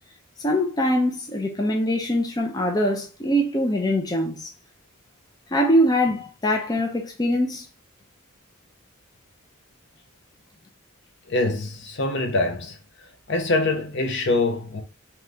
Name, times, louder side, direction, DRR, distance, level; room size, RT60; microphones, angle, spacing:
voice 1, 0.4-4.5 5.5-7.7, equal, 15° left, 0.5 m, -23 dB
voice 2, 11.3-12.8 13.3-14.8, left 2 dB, 55° left, 0.7 m, -24 dB
3.3 x 2.9 x 3.7 m
head